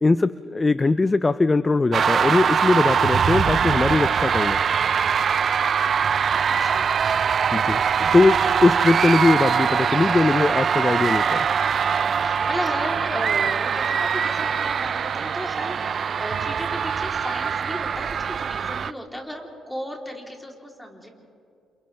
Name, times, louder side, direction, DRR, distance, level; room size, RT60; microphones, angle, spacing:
voice 1, 0.0-4.6 7.5-11.5, left 3 dB, 20° left, 14 dB, 0.4 m, -20 dB
sound 1, 1.9-18.9, right 7 dB, 45° right, 0.4 m, -22 dB
voice 2, 6.4-7.2 11.9-21.1, equal, 5° left, 0 dB, 3.4 m, -35 dB
29.5 x 27.5 x 3.4 m, 2.5 s
cardioid pair, 105°, 0 cm